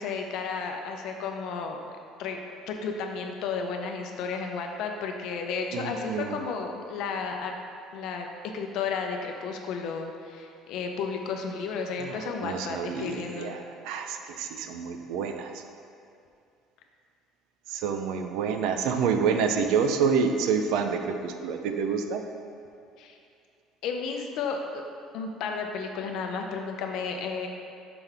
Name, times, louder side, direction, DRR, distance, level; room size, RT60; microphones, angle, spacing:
voice 1, 0.0-1.8 2.2-2.4 2.7-7.5 7.9-8.3 8.5-13.6 23.0-23.2 23.8-24.8 25.1-27.5, left 5 dB, 60° left, 3 dB, 0.6 m, -33 dB
voice 2, 5.7-6.4 12.0-15.6 17.7-22.2, right 6 dB, 75° right, 6 dB, 0.4 m, -28 dB
5.9 x 5.7 x 3.4 m, 2.5 s
cardioid pair, 165°, 0 cm